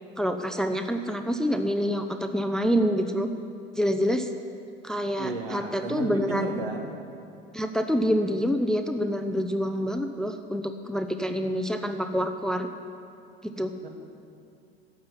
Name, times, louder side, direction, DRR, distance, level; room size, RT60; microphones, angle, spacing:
voice 1, 0.2-3.3 3.8-4.3 4.8-6.6 7.5-12.7 13.4-13.7, equal, ahead, 7 dB, 0.6 m, -27 dB
voice 2, 5.2-6.9 13.8-13.9, right 3 dB, 70° right, 3 dB, 1.7 m, -33 dB
12.0 x 7.5 x 9.7 m, 2.7 s
figure-of-eight pair, 75°, 30 cm